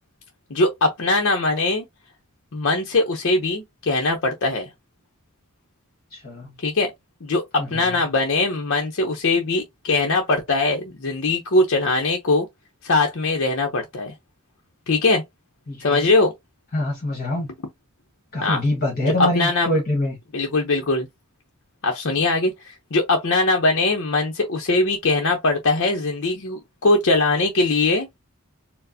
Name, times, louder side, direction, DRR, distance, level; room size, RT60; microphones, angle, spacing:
voice 1, 0.5-1.9 2.5-4.7 6.6-6.9 7.2-7.4 7.7-12.5 12.8-14.1 14.9-15.2 15.8-16.3 18.4-18.6 19.2-19.7 20.3-21.1 21.8-22.5 22.9-28.1, left 2 dB, 60° left, 0.7 m, -21 dB
voice 2, 6.1-6.5 7.6-7.8 15.7-16.1 16.7-17.5 18.3-20.2, left 1 dB, 45° left, 1.4 m, -24 dB
4.4 x 2.0 x 2.7 m
head